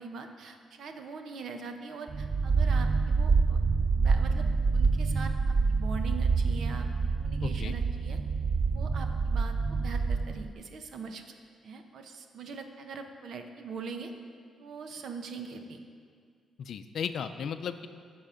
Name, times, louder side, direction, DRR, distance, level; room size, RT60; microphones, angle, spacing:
voice 1, 0.0-3.6 3.9-4.5 4.7-6.9 7.1-8.2 8.6-11.3 11.6-14.1 14.6-15.8, right 5 dB, 65° right, 6 dB, 0.9 m, -42 dB
sound 1, 2.1-10.5, right 4 dB, 30° right, 0.3 m, -27 dB
voice 2, 7.4-7.8 16.6-17.9, left 7 dB, 65° left, 10 dB, 0.5 m, -35 dB
14.5 x 6.2 x 5.1 m, 2.1 s
cardioid pair, 130°, 0 cm